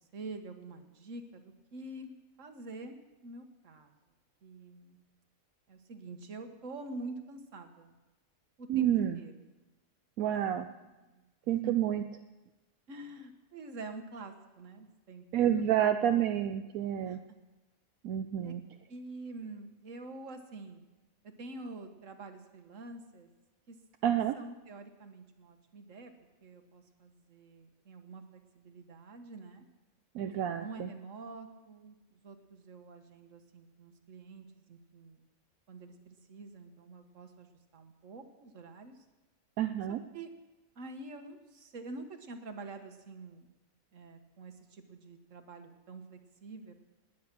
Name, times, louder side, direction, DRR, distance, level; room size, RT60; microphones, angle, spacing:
voice 1, 0.0-3.9 4.4-5.0 5.7-8.0 8.6-9.5 11.0-11.8 12.9-15.9 17.0-17.2 18.4-18.5 18.9-20.8 21.4-23.3 23.7-23.8 24.3-26.1 26.4-29.7 30.5-35.3 35.7-37.5 37.7-39.0 39.9-40.3 40.7-43.5 43.9-46.7, right 2 dB, 65° right, 6 dB, 1.7 m, -47 dB
voice 2, 8.7-9.2 10.2-10.7 11.5-12.0 15.3-17.2 18.0-18.6 24.0-24.4 30.1-30.9 39.6-40.0, right 10 dB, 85° right, 7 dB, 1.1 m, -29 dB
20.0 x 9.4 x 6.0 m, 1.1 s
omnidirectional pair, 1.4 m